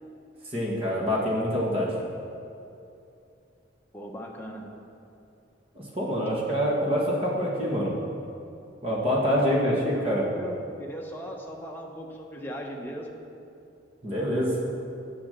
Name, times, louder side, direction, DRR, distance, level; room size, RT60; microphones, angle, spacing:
voice 1, 0.5-1.9 5.7-7.9 8.8-10.2 14.0-14.6, equal, 30° right, -4 dB, 1.6 m, -26 dB
voice 2, 3.9-4.7 6.3-6.5 9.4-13.1, equal, 10° left, -1 dB, 0.9 m, -38 dB
8.2 x 7.0 x 6.7 m, 2.6 s
head